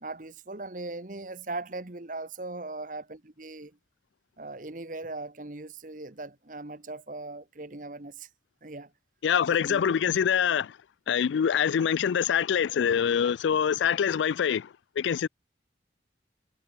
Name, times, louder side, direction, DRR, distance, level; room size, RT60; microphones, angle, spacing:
voice 1, 0.0-3.8 4.4-8.3 8.6-8.9 9.5-9.9, right 2 dB, 45° right, 1.3 m, -39 dB
voice 2, 9.2-10.8 11.1-15.3, left 8 dB, 90° left, 0.4 m, -25 dB
head